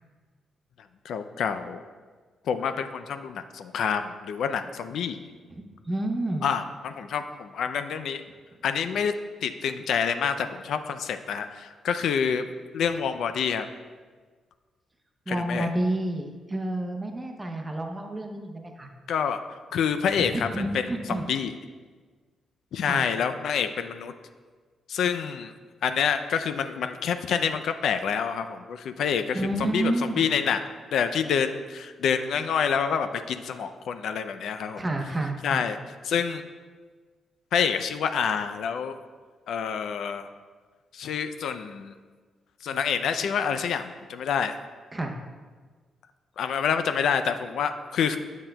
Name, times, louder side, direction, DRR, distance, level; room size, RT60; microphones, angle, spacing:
voice 1, 1.0-1.8 2.5-5.2 6.4-8.2 8.6-9.1 9.4-12.4 12.7-13.7 15.3-15.7 19.1-20.5 20.7-21.5 22.7-24.1 24.9-25.5 25.8-34.8 35.4-35.8 36.0-36.4 37.5-38.9 39.5-40.3 40.9-41.9 42.6-44.6 46.4-48.2, left 7 dB, 70° left, 9 dB, 0.3 m, -27 dB
voice 2, 5.5-6.5 15.3-18.9 20.2-21.3 22.9-23.1 29.3-30.3 34.8-35.6 44.9-45.2, right 1 dB, 15° right, 3 dB, 0.6 m, -30 dB
9.7 x 7.2 x 2.2 m, 1.5 s
cardioid pair, 155°, 0 cm